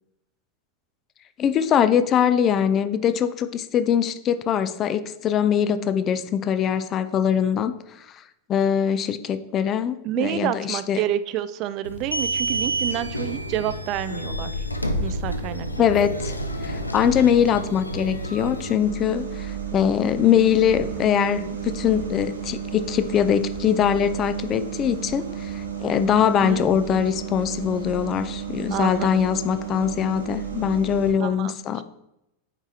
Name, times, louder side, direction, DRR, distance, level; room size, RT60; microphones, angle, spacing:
voice 1, 1.4-7.7 8.5-11.0 15.8-16.3 16.6-31.8, left 9 dB, 30° left, 12 dB, 0.4 m, -22 dB
voice 2, 10.0-14.7 15.0-15.9 26.4-26.7 28.7-29.3 31.2-31.8, right 12 dB, 40° right, 14 dB, 0.3 m, -29 dB
sound 1, 11.8-18.7, right 1 dB, 85° left, 0.5 m, -29 dB
sound 2, 13.3-14.0 14.5-31.1, right 8 dB, 75° right, 1.2 m, -34 dB
8.7 x 4.6 x 2.8 m, 0.84 s
figure-of-eight pair, 90°, 0 cm